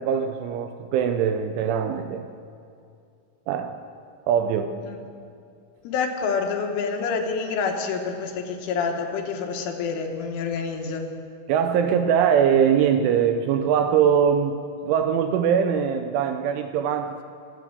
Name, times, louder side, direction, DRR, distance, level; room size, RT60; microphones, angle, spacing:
voice 1, 0.0-2.3 3.5-3.7 4.3-4.8 11.5-17.2, right 8 dB, 80° right, 7 dB, 2.9 m, -22 dB
voice 2, 5.9-11.1, left 5 dB, 75° left, 3 dB, 3.5 m, -27 dB
24.0 x 9.0 x 6.5 m, 2.4 s
omnidirectional pair, 5.9 m